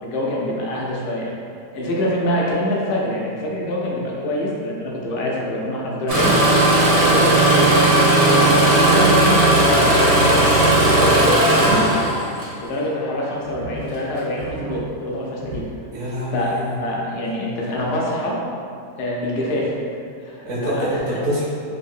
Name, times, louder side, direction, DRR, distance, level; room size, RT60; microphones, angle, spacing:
voice 1, 0.0-1.3 1.7-6.4 6.9-7.7 8.4-10.5 11.0-11.3 11.6-11.9 12.6-15.7 16.3-18.4 19.0-19.8 20.2-21.2, left 1 dB, 90° left, -3 dB, 1.3 m, -25 dB
Engine starting, 6.1-12.5 13.5-13.8 14.4-14.8 15.4-15.6, right 1 dB, 80° right, 1.4 m, -16 dB
voice 2, 10.8-11.9 15.9-16.8 20.4-21.4, equal, 55° right, -10 dB, 0.8 m, -25 dB
3.8 x 2.6 x 2.5 m, 2.3 s
omnidirectional pair, 1.8 m